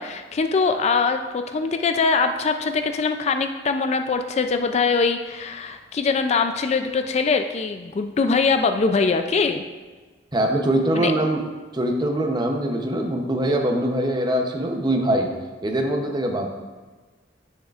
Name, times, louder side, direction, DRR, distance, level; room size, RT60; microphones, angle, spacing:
voice 1, 0.0-9.6 10.9-11.1, left 4 dB, 35° left, 7 dB, 0.3 m, -22 dB
voice 2, 10.3-11.5 11.7-15.3 15.6-16.5, right 1 dB, 25° right, 3 dB, 0.7 m, -23 dB
9.9 x 6.3 x 2.4 m, 1.3 s
head